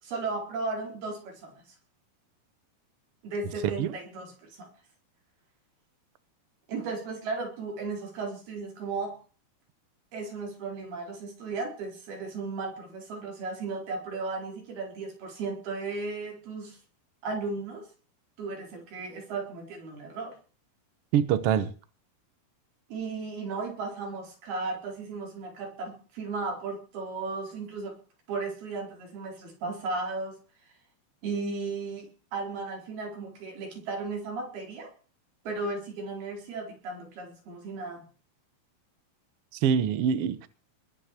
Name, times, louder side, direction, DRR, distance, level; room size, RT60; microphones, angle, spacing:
voice 1, 0.0-1.6 3.2-4.7 6.7-9.2 10.1-16.8 17.2-17.9 18.4-20.4 22.9-28.0 28.3-30.4 31.2-34.9 35.5-38.1, right 3 dB, 90° right, 6.5 m, -35 dB
voice 2, 21.1-21.7 39.5-40.5, right 8 dB, 70° right, 1.4 m, -25 dB
21.0 x 7.6 x 6.7 m
omnidirectional pair, 4.3 m